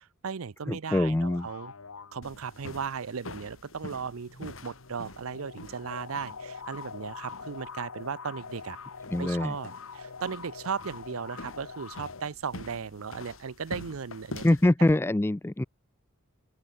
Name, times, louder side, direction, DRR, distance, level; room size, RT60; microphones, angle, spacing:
voice 1, 0.0-1.7 2.1-8.8 9.2-14.7, right 6 dB, 75° right, 0.6 m, -36 dB
voice 2, 0.7-1.5 9.1-9.5 14.4-15.6, left 1 dB, 10° left, 0.4 m, -24 dB
sound 1, 1.2-2.9 4.2-12.2, left 5 dB, 85° left, 1.2 m, -44 dB
sound 2, 2.2-14.7, left 2 dB, 70° left, 3.2 m, -46 dB
open air
head